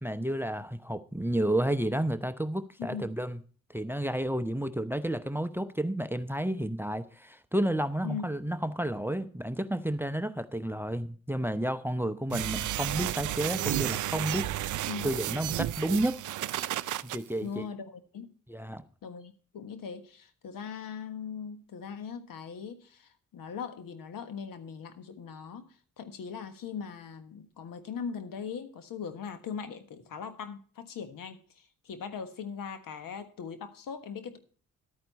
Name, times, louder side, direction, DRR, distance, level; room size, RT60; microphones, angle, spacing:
voice 1, 0.0-3.4 3.7-16.2 17.0-17.7 18.5-18.8, right 1 dB, 5° right, 0.7 m, -31 dB
sound 1, 12.3-17.2, right 13 dB, 60° right, 0.5 m, -32 dB
voice 2, 17.4-18.3 19.0-25.6 26.0-34.4, left 6 dB, 70° left, 1.4 m, -40 dB
12.0 x 9.0 x 4.2 m
supercardioid pair, 50°, 35 cm